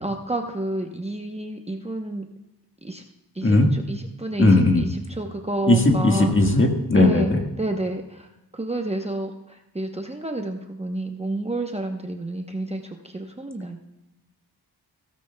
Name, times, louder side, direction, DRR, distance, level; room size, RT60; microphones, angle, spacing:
voice 1, 0.0-2.2 2.8-3.0 3.3-6.6 6.9-13.8, right 2 dB, 15° right, 3 dB, 0.8 m, -30 dB
voice 2, 4.4-4.8 5.7-7.4, left 2 dB, 30° left, 3 dB, 1.5 m, -17 dB
16.0 x 14.5 x 2.2 m, 0.98 s
wide cardioid pair, 95°, 39 cm